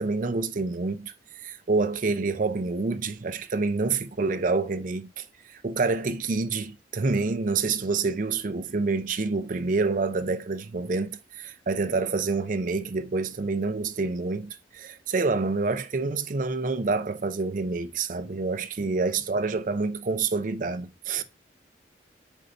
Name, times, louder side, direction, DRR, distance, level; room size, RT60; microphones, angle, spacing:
voice 1, 0.0-21.2, right 3 dB, 45° right, 0.6 m, -27 dB
voice 2, 18.8-19.4 21.2-21.3, equal, 25° right, 1.2 m, -50 dB
7.7 x 5.4 x 2.6 m
head